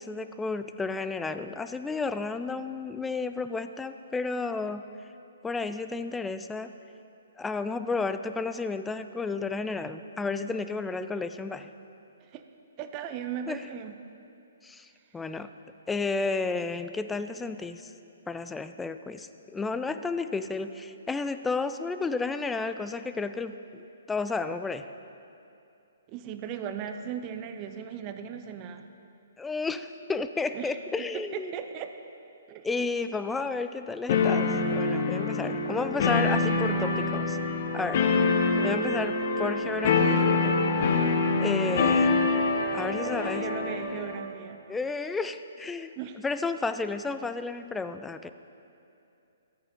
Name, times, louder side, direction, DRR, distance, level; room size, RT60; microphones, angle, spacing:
voice 1, 0.0-4.8 5.4-6.7 7.4-11.7 13.5-13.6 14.6-14.9 15.1-15.5 15.9-17.9 18.3-23.6 24.1-24.9 29.4-31.5 32.6-37.4 37.7-38.0 38.6-40.8 41.4-42.3 42.7-43.4 44.7-45.9 46.2-48.3, left 3 dB, 10° left, 10 dB, 0.3 m, -32 dB
voice 2, 12.8-14.0 26.1-28.9 30.5-30.8 31.1-31.9 32.5-32.7 35.4-35.5 38.3-38.8 43.0-44.6 46.0-46.2, right 8 dB, 30° right, 8 dB, 0.6 m, -37 dB
sound 1, 34.1-44.2, left 3 dB, 50° left, 0.9 m, -25 dB
13.0 x 9.0 x 3.7 m, 2.7 s
figure-of-eight pair, 130°, 0 cm